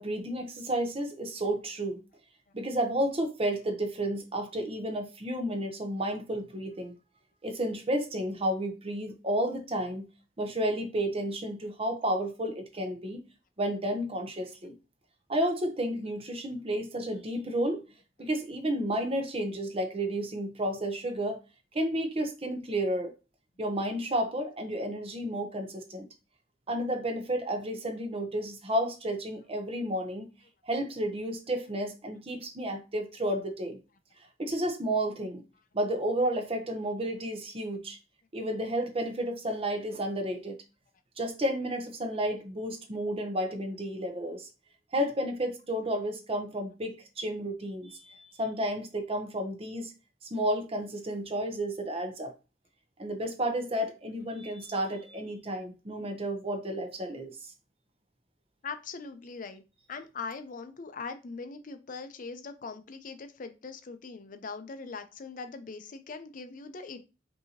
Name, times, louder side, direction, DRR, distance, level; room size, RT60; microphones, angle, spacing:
voice 1, 0.0-2.0 2.5-6.9 7.4-10.1 10.4-13.2 13.6-14.8 15.3-17.8 18.2-21.4 21.7-23.1 23.6-26.1 26.7-30.3 30.6-33.8 34.4-35.4 35.7-38.0 38.3-40.6 41.2-44.5 44.9-49.9 50.3-52.3 53.0-57.3, right 1 dB, 35° right, 0.7 m, -31 dB
voice 2, 58.6-59.6 59.9-67.0, left 4 dB, 50° left, 0.5 m, -41 dB
5.4 x 2.7 x 2.8 m
head